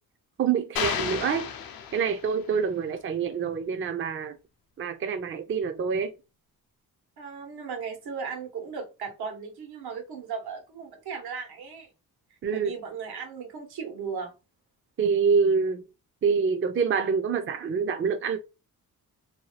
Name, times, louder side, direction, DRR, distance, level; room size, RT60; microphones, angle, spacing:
voice 1, 0.4-1.5 1.9-4.4 4.8-6.1 12.4-12.7 15.0-15.8 16.2-18.4, right 6 dB, 35° right, 0.4 m, -26 dB
sound 1, 0.8-2.5, left 7 dB, 70° left, 0.6 m, -32 dB
voice 2, 7.2-11.9 12.5-14.3, right 6 dB, 80° right, 1.1 m, -36 dB
2.7 x 2.2 x 3.2 m
cardioid pair, 90°, 37 cm